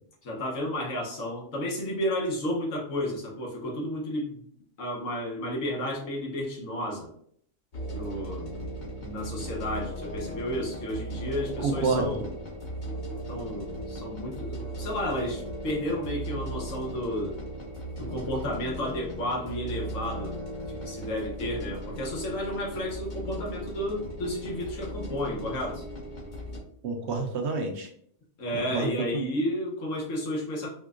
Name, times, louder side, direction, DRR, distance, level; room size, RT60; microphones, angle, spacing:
voice 1, 0.2-4.4 4.8-7.1 7.9-8.5 9.0-12.3 13.3-17.4 18.0-20.4 20.7-25.8 28.4-30.7, equal, 80° left, -2 dB, 1.3 m, -32 dB
sound 1, 7.7-26.6, equal, 45° left, 0.8 m, -37 dB
voice 2, 11.6-12.1 26.8-27.9 28.5-28.9 29.1-29.2, right 4 dB, 70° right, 4 dB, 0.8 m, -28 dB
4.4 x 2.2 x 2.4 m, 0.65 s
omnidirectional pair, 1.3 m